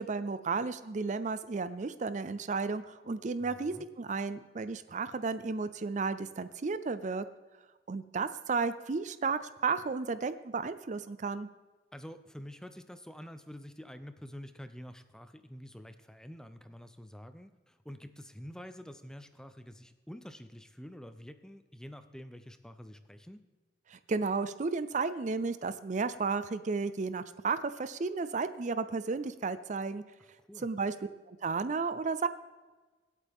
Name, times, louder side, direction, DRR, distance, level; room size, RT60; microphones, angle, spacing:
voice 1, 0.0-7.3 7.9-11.5 23.9-30.0 30.6-30.9 31.3-32.3, right 4 dB, 45° right, 13 dB, 0.5 m, -33 dB
voice 2, 3.4-3.9 11.9-23.4 30.4-30.7, equal, 5° left, 10 dB, 0.6 m, -48 dB
24.0 x 8.3 x 3.6 m, 1.3 s
head